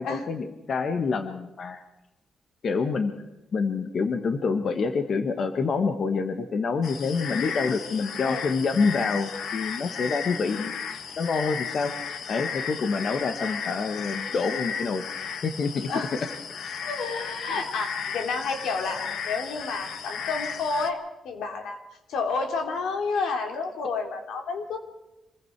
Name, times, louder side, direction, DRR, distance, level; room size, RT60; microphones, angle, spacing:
voice 1, 0.0-1.8 2.6-3.1 3.5-10.7 11.2-11.9 12.3-15.0 15.4-16.3 17.5-17.7, left 4 dB, 45° left, 8 dB, 1.3 m, -27 dB
sound 1, 6.8-20.9, left 7 dB, 65° left, 1.4 m, -35 dB
voice 2, 16.8-21.8 22.1-24.8, left 4 dB, 85° left, 4 dB, 3.3 m, -30 dB
26.5 x 21.0 x 4.7 m, 0.97 s
wide cardioid pair, 165°, 0 cm